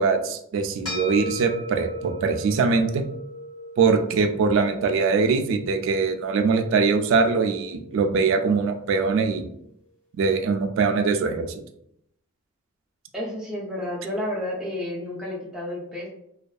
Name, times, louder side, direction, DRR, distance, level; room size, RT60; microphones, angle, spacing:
voice 1, 0.0-3.0 3.8-9.5 10.1-11.5, right 4 dB, 65° right, 6 dB, 0.3 m, -22 dB
sound 1, 0.8-9.4, equal, 20° left, 1.2 m, -38 dB
voice 2, 13.1-16.1, left 1 dB, 5° right, -5 dB, 0.5 m, -31 dB
2.6 x 2.2 x 2.3 m, 0.76 s
head